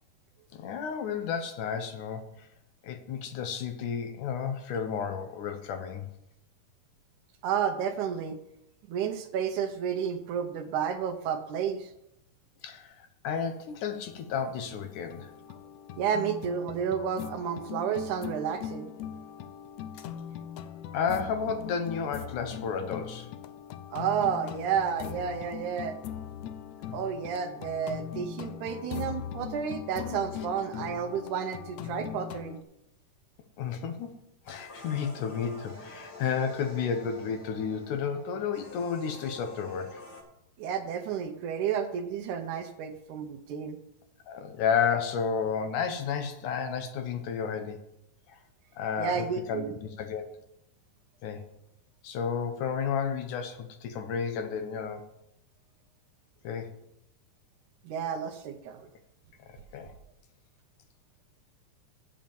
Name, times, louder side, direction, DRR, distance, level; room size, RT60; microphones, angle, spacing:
voice 1, 0.5-2.5 2.8-6.1 12.6-15.3 20.9-23.3 33.6-34.1 34.5-40.0 44.3-47.8 48.3-48.4 48.8-50.2 51.2-51.4 52.0-55.1 56.4-56.7 59.7-59.9, left 6 dB, 70° left, 7 dB, 2.3 m, -32 dB
voice 2, 7.4-8.4 8.9-11.9 16.0-18.9 23.9-26.0 26.9-32.6 40.6-43.8 49.0-49.7 57.8-58.9, right 7 dB, 75° right, 6 dB, 2.1 m, -31 dB
sound 1, 13.7-13.8 14.1-32.6, left 9 dB, 90° left, 1.5 m, -40 dB
sound 2, 34.5-40.2, left 1 dB, 35° left, 2.2 m, -47 dB
8.0 x 7.5 x 7.0 m, 0.78 s
omnidirectional pair, 3.8 m